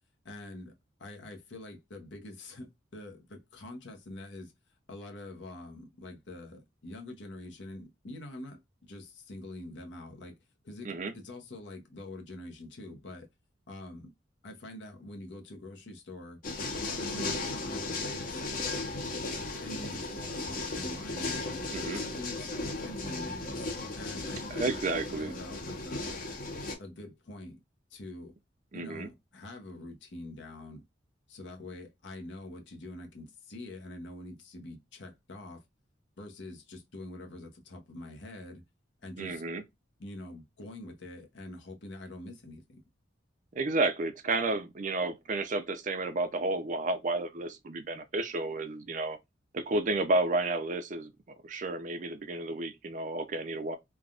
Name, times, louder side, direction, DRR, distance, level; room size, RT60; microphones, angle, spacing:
voice 1, 0.2-0.7 1.0-4.5 4.9-10.4 10.6-13.3 13.7-14.1 14.4-16.4 16.8-18.4 19.6-21.4 21.8-22.5 22.8-23.7 23.9-24.8 25.2-26.2 26.8-27.6 27.9-28.3 28.7-30.8 31.3-35.6 36.2-38.6 39.0-39.4 40.0-42.8, left 1 dB, 75° left, 0.8 m, -45 dB
sound 1, 16.4-26.7, left 2 dB, 45° left, 0.8 m, -36 dB
voice 2, 24.5-25.3 28.7-29.1 39.2-39.6 43.5-49.2 49.5-51.1 51.4-53.8, right 2 dB, 40° right, 0.5 m, -31 dB
3.3 x 2.2 x 2.3 m
head